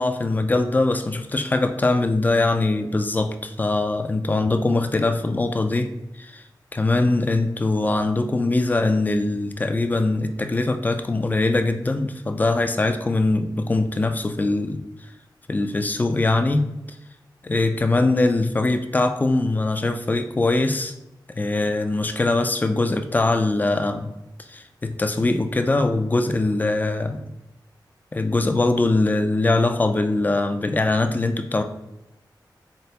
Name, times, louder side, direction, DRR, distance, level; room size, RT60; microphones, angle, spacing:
voice 1, 0.0-5.9 6.2-6.4 6.7-14.8 15.5-16.6 17.4-20.9 21.3-24.1 24.5-27.2 28.1-31.6, left 2 dB, 20° left, 7 dB, 0.3 m, -22 dB
3.8 x 3.3 x 2.8 m, 0.91 s
wide cardioid pair, 110°, 8 cm